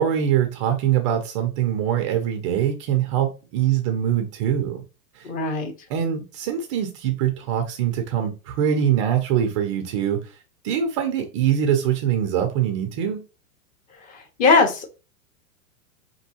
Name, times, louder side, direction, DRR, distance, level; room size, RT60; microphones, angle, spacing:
voice 1, 0.0-4.8 5.2-5.3 5.9-10.2 10.6-13.2, right 9 dB, 25° right, 0.3 m, -23 dB
voice 2, 5.2-5.7 14.0-14.9, left 4 dB, 20° left, 0.7 m, -20 dB
5.1 x 2.7 x 2.8 m
hypercardioid pair, 140°, 42 cm